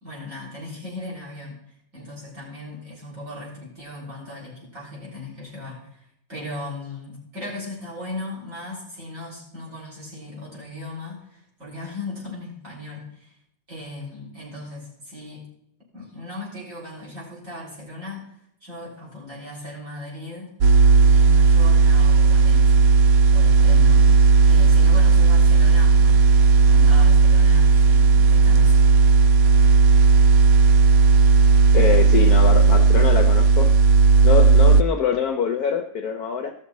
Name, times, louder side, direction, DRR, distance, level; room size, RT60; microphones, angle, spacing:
voice 1, 0.0-1.6 1.9-6.0 6.3-13.3 13.7-15.4 15.9-18.3 18.6-20.5 21.0-22.9 23.3-24.1 24.5-26.3 26.7-28.8, left 2 dB, 40° right, -4 dB, 4.1 m, -37 dB
sound 1, 20.6-34.8, right 4 dB, 80° right, 0.8 m, -14 dB
voice 2, 31.7-33.7 34.2-36.5, left 6 dB, 65° left, 4 dB, 1.0 m, -24 dB
15.0 x 6.4 x 4.1 m, 0.73 s
omnidirectional pair, 2.1 m